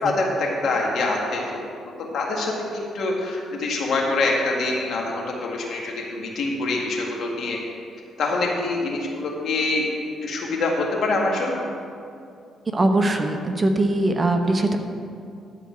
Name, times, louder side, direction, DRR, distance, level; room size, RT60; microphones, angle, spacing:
voice 1, 0.0-1.5 2.1-7.6 8.2-9.9 10.2-11.6, left 2 dB, 65° left, -1 dB, 1.9 m, -25 dB
voice 2, 12.7-14.8, right 2 dB, 25° right, 5 dB, 0.9 m, -21 dB
12.5 x 4.3 x 7.6 m, 2.4 s
cardioid pair, 90°, 0 cm